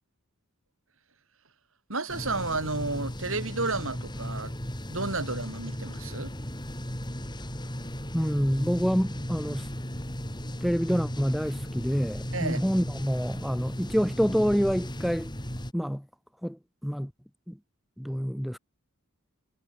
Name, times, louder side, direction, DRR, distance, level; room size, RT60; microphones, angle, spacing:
voice 1, 1.9-4.5 4.9-6.3 12.3-12.7, right 3 dB, 60° right, 7.6 m, -32 dB
sound 1, 2.1-15.7, equal, 20° left, 3.8 m, -36 dB
voice 2, 8.1-9.7 10.6-15.3 15.7-16.0 16.4-17.1 17.5-17.6 18.0-18.6, equal, ahead, 4.1 m, -27 dB
head